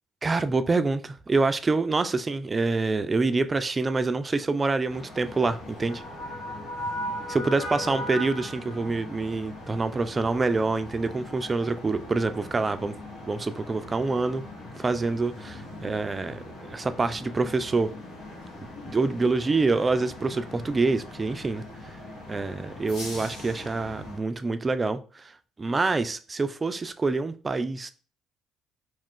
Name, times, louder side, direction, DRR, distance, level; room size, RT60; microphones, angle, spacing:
voice 1, 0.2-6.0 7.3-12.9 13.3-14.4 14.8-17.9 18.9-21.6 22.3-25.3 25.6-27.9, right 3 dB, 30° right, 0.3 m, -26 dB
sound 1, 4.9-24.2, left 1 dB, 85° left, 1.2 m, -39 dB
2.4 x 2.4 x 3.6 m
supercardioid pair, 80°, 0 cm